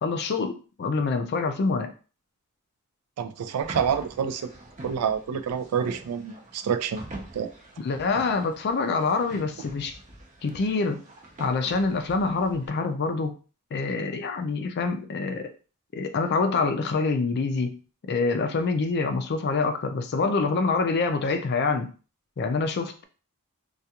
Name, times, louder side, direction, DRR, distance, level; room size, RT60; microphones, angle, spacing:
voice 1, 0.0-1.9 7.8-9.9 10.4-11.0 11.4-13.3 13.7-15.5 15.9-17.8 18.1-21.9 22.4-23.0, left 4 dB, 50° left, 7 dB, 0.4 m, -26 dB
voice 2, 3.2-4.5 4.8-7.0 7.3-7.5, right 7 dB, 85° right, 9 dB, 0.3 m, -28 dB
sound 1, 3.6-12.7, right 2 dB, 35° right, 0.5 m, -44 dB
2.3 x 2.3 x 2.8 m, 0.36 s
head